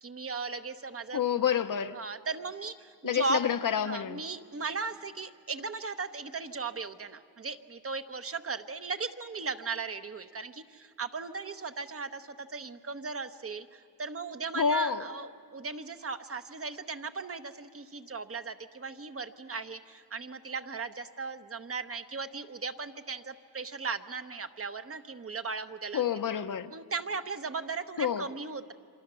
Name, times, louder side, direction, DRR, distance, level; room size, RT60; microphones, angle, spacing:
voice 1, 0.0-1.2 1.9-3.4 3.8-26.0 26.7-28.7, right 4 dB, 35° right, 1.0 m, -37 dB
voice 2, 1.1-2.0 3.0-4.2 14.5-15.1 25.9-26.7 28.0-28.2, left 7 dB, 55° left, 0.9 m, -28 dB
27.5 x 25.5 x 6.9 m
cardioid pair, 95°, 38 cm